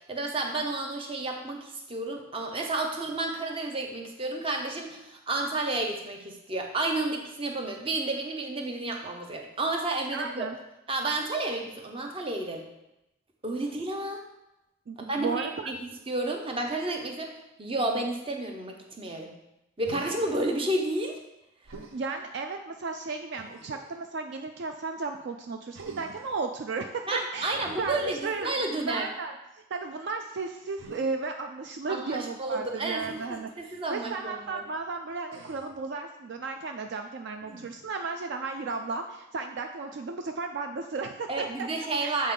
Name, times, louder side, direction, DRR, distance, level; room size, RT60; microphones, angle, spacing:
voice 1, 0.1-10.5 10.9-12.6 13.4-14.2 15.0-15.8 16.1-17.3 17.6-19.3 19.8-21.2 27.1-29.1 31.9-34.6 41.3-42.3, right 2 dB, 25° right, 2 dB, 0.7 m, -31 dB
voice 2, 10.1-10.6 14.9-15.7 21.9-27.1 27.3-29.3 29.7-41.7 42.0-42.2, right 4 dB, 55° right, 5 dB, 0.4 m, -34 dB
Human voice, 19.8-20.4 21.6-22.0 23.3-24.0 25.7-26.4 27.5-28.7 30.8-31.0 33.0-33.3 35.3-35.8 37.4-37.9, right 3 dB, 80° right, 0.7 m, -46 dB
7.4 x 4.2 x 3.7 m, 0.91 s
head